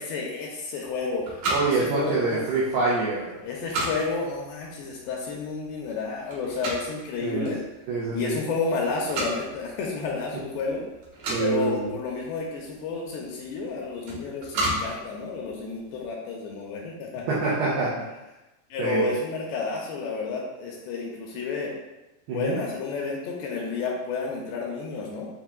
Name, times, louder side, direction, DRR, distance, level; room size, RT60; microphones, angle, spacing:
voice 1, 0.0-2.4 3.4-7.6 8.1-10.8 11.4-17.2 18.7-21.7 22.3-25.3, left 4 dB, 80° left, -2 dB, 2.5 m, -31 dB
sound 1, 0.8-16.1, right 1 dB, 70° right, 2.1 m, -36 dB
voice 2, 1.5-3.4 7.2-7.5 7.9-8.4 11.3-11.9 17.3-18.0 18.8-19.1 22.3-22.6, right 3 dB, 85° right, -7 dB, 2.1 m, -26 dB
8.0 x 2.9 x 2.3 m, 1.0 s
omnidirectional pair, 5.2 m